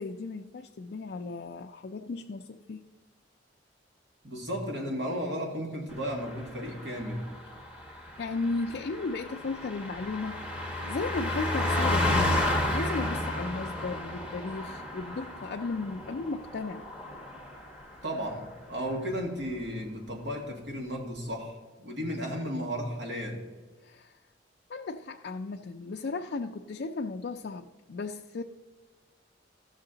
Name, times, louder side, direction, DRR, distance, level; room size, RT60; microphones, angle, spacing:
voice 1, 0.0-2.9 8.2-12.3 12.7-16.9 23.8-24.2 24.7-28.4, left 3 dB, 60° left, 2 dB, 0.4 m, -35 dB
voice 2, 4.2-7.3 18.0-23.4, equal, 75° right, 1 dB, 2.0 m, -34 dB
Car passing by, 6.0-17.9 18.2-18.5, left 1 dB, 5° right, 1.1 m, -32 dB
14.5 x 6.4 x 3.9 m, 1.3 s
head